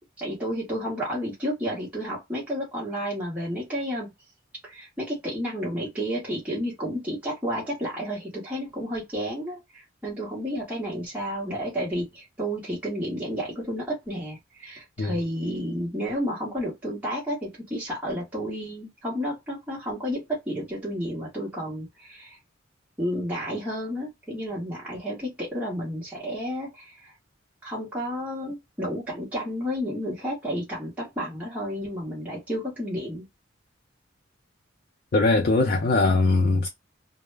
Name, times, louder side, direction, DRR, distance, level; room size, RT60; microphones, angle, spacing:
voice 1, 0.2-4.1 4.6-22.4 23.0-27.1 27.6-33.3, equal, 10° right, 0.9 m, -31 dB
voice 2, 35.1-36.7, left 3 dB, 50° left, 0.4 m, -21 dB
2.0 x 2.0 x 3.2 m
head